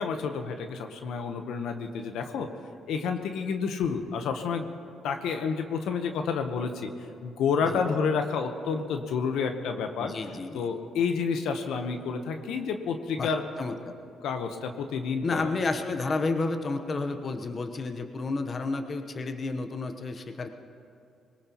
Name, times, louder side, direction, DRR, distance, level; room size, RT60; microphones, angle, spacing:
voice 1, 0.0-2.5 2.9-4.7 5.0-6.9 7.2-10.1 10.5-13.4 14.2-15.5, left 5 dB, 80° left, 6 dB, 1.0 m, -29 dB
voice 2, 10.0-10.7 13.2-13.9 15.2-20.5, left 3 dB, 40° left, 6 dB, 1.0 m, -31 dB
21.5 x 19.5 x 3.0 m, 2.5 s
cardioid pair, 90°, 0 cm